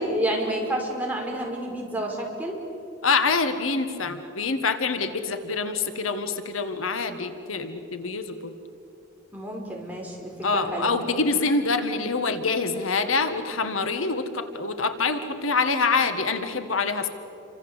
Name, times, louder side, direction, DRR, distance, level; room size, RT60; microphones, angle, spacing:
voice 1, 0.0-2.5 9.3-10.9, right 1 dB, 10° right, -2 dB, 5.3 m, -29 dB
voice 2, 3.0-8.5 10.4-17.1, left 4 dB, 85° left, 8 dB, 1.7 m, -25 dB
29.0 x 25.0 x 8.2 m, 2.7 s
head